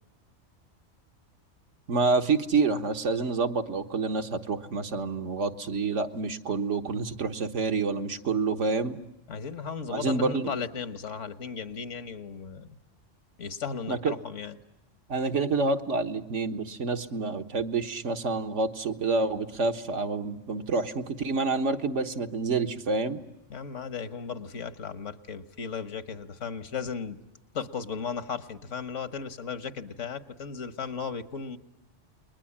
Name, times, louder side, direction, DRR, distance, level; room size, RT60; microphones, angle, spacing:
voice 1, 1.9-9.0 9.9-10.5 13.9-14.1 15.1-23.2, right 4 dB, 80° right, 6 dB, 1.7 m, -28 dB
voice 2, 9.3-12.8 13.4-14.6 23.5-27.2 27.5-31.6, left 6 dB, 80° left, 12 dB, 1.6 m, -36 dB
29.5 x 22.0 x 8.6 m, 0.91 s
omnidirectional pair, 1.2 m